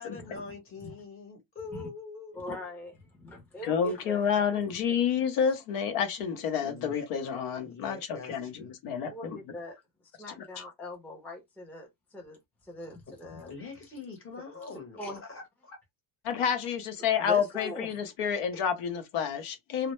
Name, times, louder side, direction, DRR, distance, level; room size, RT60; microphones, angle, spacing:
voice 1, 0.0-2.4 6.6-8.7 13.5-15.8, left 4 dB, 25° left, 0.9 m, -44 dB
voice 2, 2.3-4.2 4.5-4.8 5.4-5.5 9.0-9.8 10.2-13.5 15.0-15.2 17.2-18.0, left 1 dB, 5° left, 0.5 m, -42 dB
voice 3, 3.6-9.4 16.2-19.9, left 7 dB, 80° left, 0.8 m, -29 dB
2.0 x 2.0 x 3.0 m
cardioid pair, 150°, 49 cm